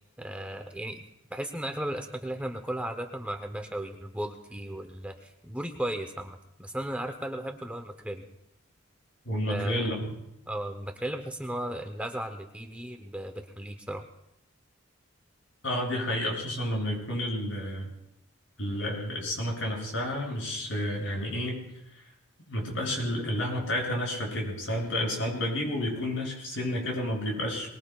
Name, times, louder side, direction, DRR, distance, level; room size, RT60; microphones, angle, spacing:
voice 1, 0.2-1.0 1.3-8.2 9.5-9.9 10.5-14.0, right 1 dB, 5° right, 6 dB, 0.7 m, -35 dB
voice 2, 9.2-10.1 15.6-17.9 18.6-21.6 22.5-27.7, left 1 dB, 75° left, -2 dB, 7.2 m, -30 dB
24.0 x 20.5 x 2.4 m, 0.81 s
head